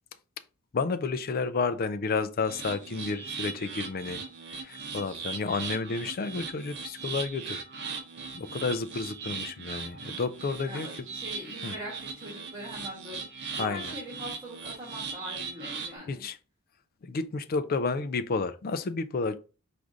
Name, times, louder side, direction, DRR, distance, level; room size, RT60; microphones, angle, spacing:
voice 1, 0.7-4.2 4.6-7.6 8.3-10.9 11.6-11.7 13.5-13.9 16.1-16.4 17.0-19.4, left 4 dB, 45° left, 0.4 m, -31 dB
sound 1, 2.4-16.0, right 5 dB, 50° right, 0.7 m, -39 dB
voice 2, 10.6-16.2, equal, 20° right, 1.4 m, -42 dB
4.7 x 2.6 x 3.8 m
head